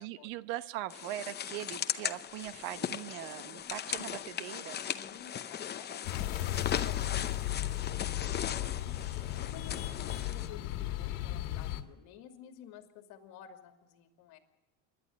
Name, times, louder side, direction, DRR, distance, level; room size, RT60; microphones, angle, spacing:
voice 1, 0.0-4.8, right 14 dB, 80° right, 14 dB, 1.1 m, -40 dB
sound 1, 0.9-10.5, left 9 dB, 25° left, 0.7 m, -38 dB
voice 2, 4.9-9.0 9.3-14.4, left 9 dB, 60° left, 5 dB, 2.6 m, -52 dB
sound 2, 6.0-11.8, left 14 dB, 80° left, 1.8 m, -35 dB
27.0 x 11.5 x 8.6 m, 1.1 s
supercardioid pair, 130°, 42 cm